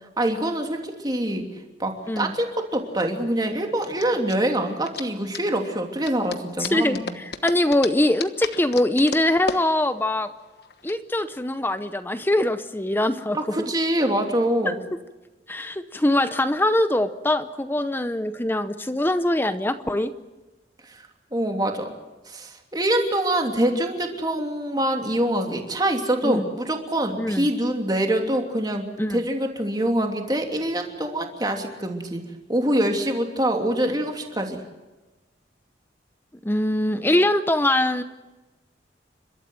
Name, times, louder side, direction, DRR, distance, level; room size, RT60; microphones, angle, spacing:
voice 1, 0.2-1.4 1.8-7.2 13.3-14.8 20.8-21.0 21.3-22.0 22.3-32.2 32.5-34.6, right 1 dB, 20° right, 3 dB, 2.9 m, -25 dB
sound 1, 2.0-10.9, left 4 dB, 60° left, 1.3 m, -36 dB
voice 2, 6.6-10.3 10.8-13.4 14.6-14.7 15.5-20.1 26.2-26.5 27.2-27.5 29.0-29.2 36.4-38.0, left 1 dB, 10° left, 11 dB, 0.7 m, -23 dB
30.0 x 13.0 x 9.4 m, 1.1 s
head